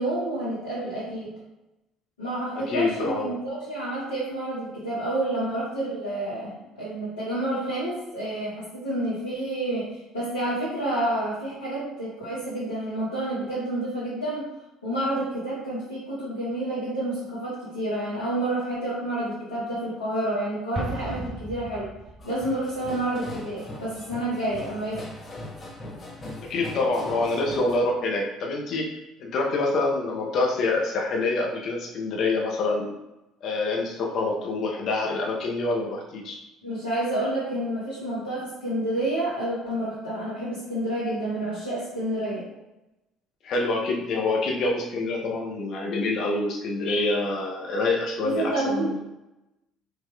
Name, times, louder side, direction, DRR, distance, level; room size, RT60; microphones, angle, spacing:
voice 1, 0.0-1.3 2.2-14.5 14.8-21.9 22.2-25.0 36.6-42.5 48.2-48.9, right 1 dB, 85° left, -10 dB, 1.1 m, -29 dB
voice 2, 2.5-3.3 26.4-28.9 29.2-33.0 33.4-36.4 43.4-49.1, left 2 dB, 55° left, 0 dB, 0.6 m, -26 dB
Explosion, 20.7-22.5, right 2 dB, 35° right, 0.7 m, -35 dB
sound 1, 22.2-27.8, left 2 dB, 35° left, 1.1 m, -40 dB
4.9 x 3.0 x 2.2 m, 0.94 s
figure-of-eight pair, 55°, 0 cm